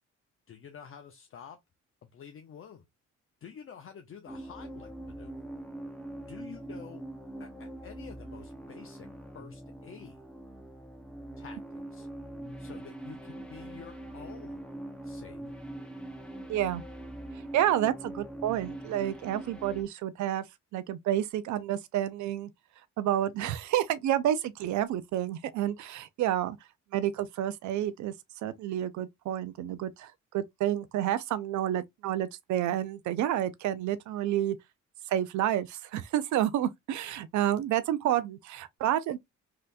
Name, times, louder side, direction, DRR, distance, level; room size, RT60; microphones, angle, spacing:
voice 1, 0.5-1.6 2.0-2.8 3.4-5.4 6.3-7.0 7.4-9.1 9.3-10.2 11.4-12.1 12.6-14.6 15.0-15.4, left 7 dB, 45° left, 0.6 m, -49 dB
sound 1, 4.3-19.8, right 1 dB, 5° left, 0.7 m, -43 dB
voice 2, 16.5-16.8 17.5-20.4 20.7-22.5 23.0-26.6 26.9-28.1 28.4-34.6 35.1-39.2, right 12 dB, 70° right, 0.4 m, -29 dB
3.2 x 2.8 x 2.3 m
cardioid pair, 90°, 30 cm